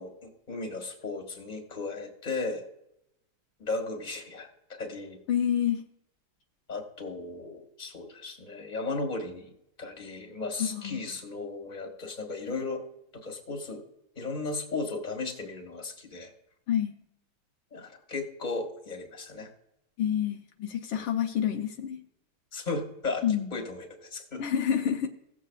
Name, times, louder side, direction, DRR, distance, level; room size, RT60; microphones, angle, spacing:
voice 1, 0.0-2.6 3.6-5.2 6.7-9.5 9.8-12.8 13.1-13.8 14.2-16.3 17.7-19.5 20.9-21.1 22.5-24.4, left 3 dB, 25° left, 2 dB, 1.8 m, -36 dB
voice 2, 5.3-5.8 10.6-11.0 16.7-16.9 20.0-22.0 23.2-23.5 24.4-25.1, left 9 dB, 80° left, 3 dB, 1.6 m, -28 dB
18.0 x 7.4 x 2.4 m, 0.81 s
omnidirectional pair, 2.3 m